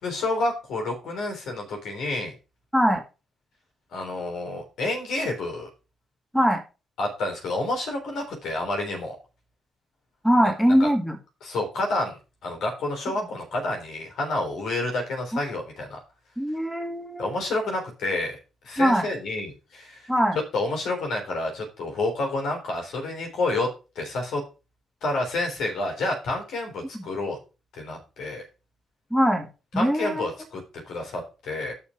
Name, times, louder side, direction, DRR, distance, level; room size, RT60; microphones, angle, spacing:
voice 1, 0.0-2.3 3.9-5.7 7.0-9.2 10.8-10.9 11.4-12.2 12.4-16.0 17.2-18.4 18.6-20.0 20.5-23.7 24.0-24.4 25.0-27.4 27.8-28.4 29.8-30.6 30.9-31.7, left 2 dB, 60° left, 1 dB, 3.8 m, -29 dB
voice 2, 10.2-11.2 15.3-15.4 16.4-17.4 18.8-19.1 20.1-20.4 26.9-27.1 29.1-29.5 29.7-30.2, equal, ahead, 4 dB, 2.4 m, -22 dB
6.8 x 6.7 x 6.0 m, 0.31 s
figure-of-eight pair, 40°, 0 cm